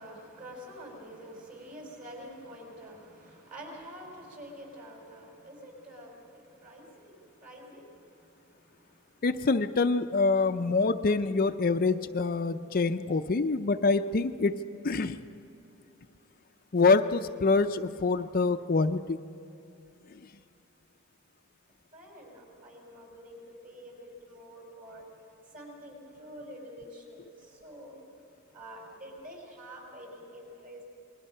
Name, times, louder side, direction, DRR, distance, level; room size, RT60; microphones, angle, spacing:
voice 1, 0.0-7.1 7.4-7.8 21.9-25.0 25.5-28.0 28.5-30.8, equal, 40° right, 0 dB, 5.8 m, -47 dB
voice 2, 9.2-15.2 16.7-19.2, left 3 dB, 40° left, 8 dB, 0.5 m, -26 dB
28.0 x 21.0 x 5.6 m, 2.8 s
head